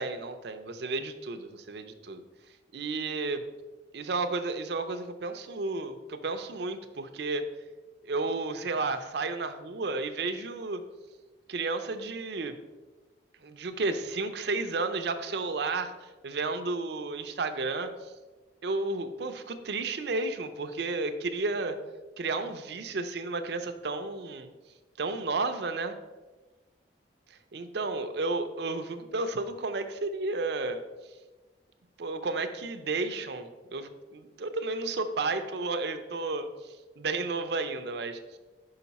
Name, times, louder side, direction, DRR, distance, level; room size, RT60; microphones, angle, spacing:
voice 1, 0.0-2.2 2.7-3.4 3.9-7.4 8.1-10.8 11.5-12.5 13.4-15.9 16.2-17.9 18.6-21.8 22.2-24.5 25.0-26.0 27.5-30.8 32.0-36.5 37.0-38.4, right 3 dB, 60° right, 8 dB, 0.5 m, -32 dB
5.7 x 5.2 x 4.1 m, 1.2 s
head